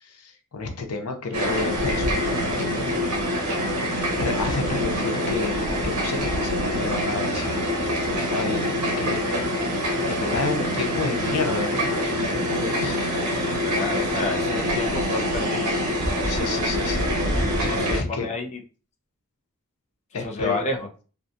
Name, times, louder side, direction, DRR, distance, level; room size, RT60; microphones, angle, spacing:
voice 1, 0.0-3.2 3.5-3.7 4.1-9.8 10.1-13.0 16.2-18.3 20.1-20.6, left 3 dB, 90° left, 4 dB, 0.6 m, -31 dB
sound 1, 1.3-18.0, equal, 80° right, 0.8 m, -25 dB
voice 2, 13.4-15.8 17.6-18.6 20.2-20.9, left 2 dB, 30° left, 2 dB, 0.5 m, -30 dB
2.6 x 2.2 x 2.6 m, 0.36 s
head